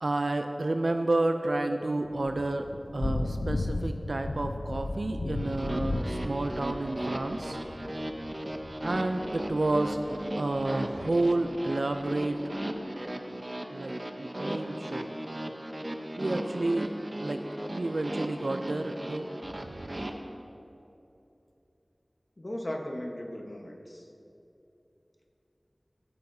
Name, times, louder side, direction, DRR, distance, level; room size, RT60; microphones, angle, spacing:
voice 1, 0.0-2.7 2.9-7.6 8.8-12.4 13.7-15.1 16.2-16.9 17.2-17.4 17.7-19.3, right 2 dB, 80° right, 6 dB, 0.4 m, -30 dB
Thunder / Rain, 2.1-11.6, left 2 dB, 85° left, 0.4 m, -36 dB
sound 1, 5.4-20.1, right 1 dB, 40° right, 0.8 m, -37 dB
voice 2, 22.4-24.1, left 1 dB, 50° left, 1 dB, 1.2 m, -37 dB
16.0 x 8.6 x 2.7 m, 2.8 s
wide cardioid pair, 45°, 0 cm